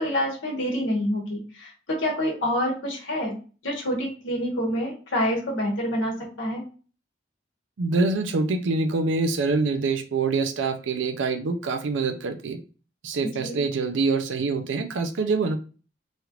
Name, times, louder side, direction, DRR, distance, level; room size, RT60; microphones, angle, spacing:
voice 1, 0.0-3.4 3.6-6.6 13.2-13.6, equal, 85° left, -3 dB, 1.3 m, -27 dB
voice 2, 7.8-12.6 13.0-15.6, right 3 dB, 85° right, 6 dB, 0.5 m, -25 dB
3.1 x 2.4 x 2.9 m, 0.37 s
head